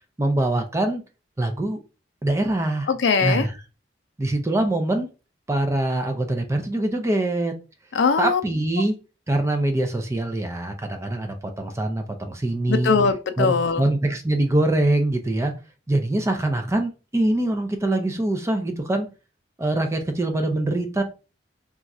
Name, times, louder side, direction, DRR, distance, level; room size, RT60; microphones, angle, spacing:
voice 1, 0.2-1.0 1.4-1.8 2.2-2.9 3.2-3.5 4.2-5.1 5.5-7.5 8.2-9.0 9.3-13.0 13.4-15.5 15.9-19.1 19.6-21.0, right 1 dB, 15° right, 0.4 m, -23 dB
voice 2, 2.9-3.5 7.9-8.4 12.7-13.8, left 5 dB, 70° left, 0.4 m, -21 dB
2.4 x 2.3 x 4.0 m
head